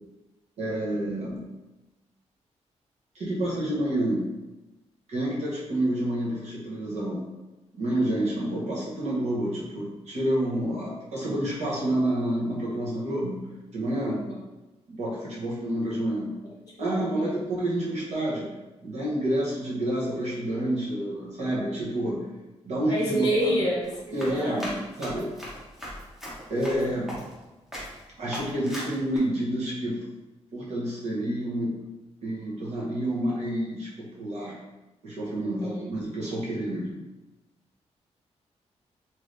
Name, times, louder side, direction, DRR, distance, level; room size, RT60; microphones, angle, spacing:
voice 1, 0.6-1.4 3.1-4.3 5.1-7.2 7.7-13.4 13.7-14.2 14.9-16.3 16.8-18.5 18.8-22.2 22.6-23.5 24.1-25.3 26.5-27.1 28.2-30.0 30.5-31.8 32.2-34.6 35.0-37.1, right 1 dB, 70° right, -6 dB, 0.9 m, -29 dB
voice 2, 16.8-17.4 22.9-24.8 35.4-35.9, equal, 35° left, -4 dB, 0.8 m, -29 dB
Run, 23.8-27.4 27.7-28.0 28.3-29.2, equal, 5° right, 0.8 m, -39 dB
3.2 x 2.8 x 2.5 m, 1.1 s
wide cardioid pair, 170°, 12 cm